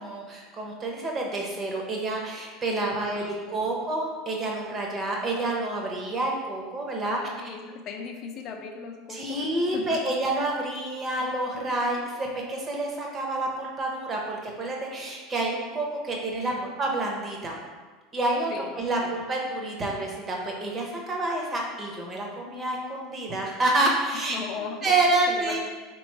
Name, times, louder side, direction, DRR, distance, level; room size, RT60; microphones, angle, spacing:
voice 1, 0.0-7.2 9.1-16.5 16.8-17.6 18.1-18.5 18.8-24.4 24.8-25.6, right 2 dB, 20° right, -1 dB, 0.8 m, -28 dB
voice 2, 2.9-3.7 6.9-10.0 11.2-11.3 16.4-16.7 18.5-18.7 19.0-19.1 24.3-24.9 25.3-25.6, left 5 dB, 45° left, 4 dB, 0.5 m, -38 dB
3.5 x 3.0 x 4.6 m, 1.4 s
supercardioid pair, 145°, 0 cm